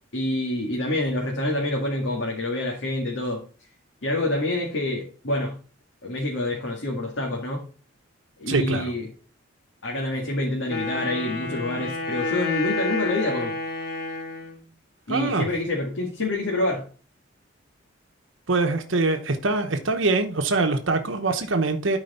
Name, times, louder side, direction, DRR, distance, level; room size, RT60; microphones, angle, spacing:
voice 1, 0.1-3.4 4.0-5.6 6.0-7.6 8.4-9.1 9.8-13.5 15.1-16.9, left 1 dB, 75° left, -2 dB, 2.1 m, -27 dB
voice 2, 8.5-8.9 15.1-15.5 18.5-22.0, right 3 dB, 80° right, 5 dB, 1.0 m, -23 dB
Wind instrument woodwind instrument, 10.7-14.7, left 3 dB, 55° left, 2.8 m, -29 dB
12.0 x 4.8 x 4.2 m, 0.39 s
head